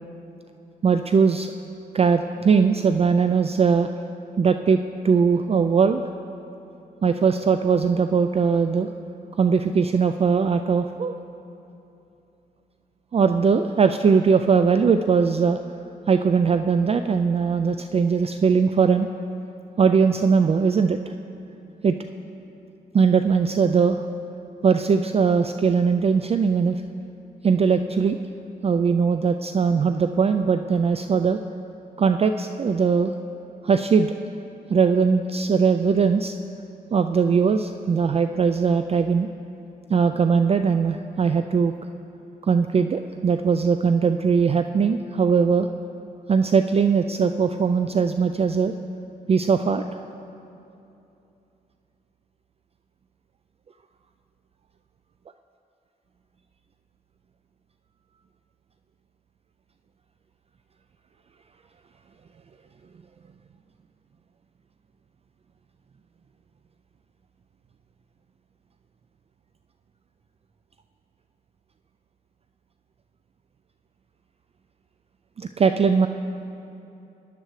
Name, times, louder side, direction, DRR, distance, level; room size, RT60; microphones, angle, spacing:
voice 1, 0.8-1.5 1.9-3.9 4.4-4.8 5.0-6.0 7.0-8.9 9.4-11.1 13.1-15.6 16.1-19.1 19.8-21.0 21.8-21.9 22.9-24.0 24.6-26.8 27.4-28.2 28.6-31.4 32.0-33.1 33.6-34.1 34.7-36.3 36.9-39.3 39.9-41.7 42.5-45.7 46.3-48.7 49.3-49.8 75.4-76.1, right 5 dB, 35° right, 8 dB, 0.3 m, -20 dB
18.5 x 11.5 x 3.2 m, 2.8 s
cardioid pair, 90°, 17 cm